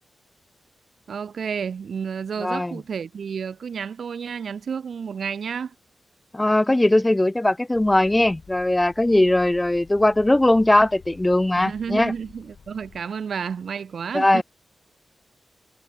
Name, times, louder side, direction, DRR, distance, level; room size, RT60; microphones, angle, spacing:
voice 1, 1.1-5.7 11.6-14.4, right 6 dB, 75° right, 0.6 m, -31 dB
voice 2, 2.4-2.8 6.3-12.1 14.1-14.4, left 1 dB, 20° left, 0.3 m, -19 dB
sound 1, 7.7-13.0, left 6 dB, 70° left, 3.4 m, -49 dB
cardioid pair, 45°, 0 cm